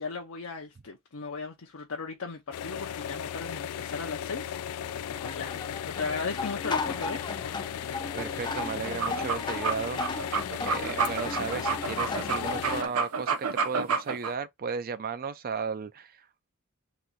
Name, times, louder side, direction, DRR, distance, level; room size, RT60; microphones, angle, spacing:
voice 1, 0.0-5.5 5.8-7.3, left 4 dB, 65° left, 0.7 m, -37 dB
sound 1, 2.5-12.8, left 9 dB, 90° left, 0.3 m, -36 dB
sound 2, 4.8-12.9, left 3 dB, 20° left, 0.6 m, -36 dB
voice 2, 7.8-10.3 10.6-16.2, right 5 dB, 45° right, 0.5 m, -35 dB
sound 3, 8.8-14.3, right 5 dB, 80° right, 0.7 m, -30 dB
3.0 x 2.9 x 3.8 m
head